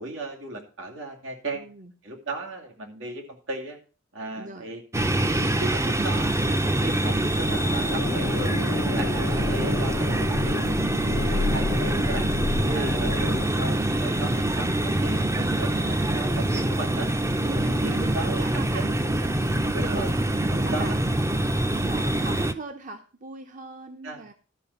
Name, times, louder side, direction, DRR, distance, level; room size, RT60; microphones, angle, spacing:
voice 1, 0.0-1.7 2.0-3.8 4.1-4.8 5.1-8.5 8.9-10.7 11.0-12.3 12.7-17.1 17.5-18.9 19.3-20.1 20.5-21.0 21.8-21.9 22.1-22.2 24.0-24.2, right 2 dB, 85° right, 1 dB, 2.6 m, -36 dB
voice 2, 1.5-1.9 4.4-4.7 12.6-13.0 17.4-19.0 19.8-20.2 20.6-21.1 21.7-24.3, right 3 dB, 40° right, 7 dB, 0.8 m, -38 dB
sound 1, 4.9-22.5, right 1 dB, 15° right, 0.5 m, -25 dB
sound 2, 7.5-13.5, left 4 dB, 55° left, 0.4 m, -31 dB
12.5 x 4.9 x 6.9 m, 0.37 s
head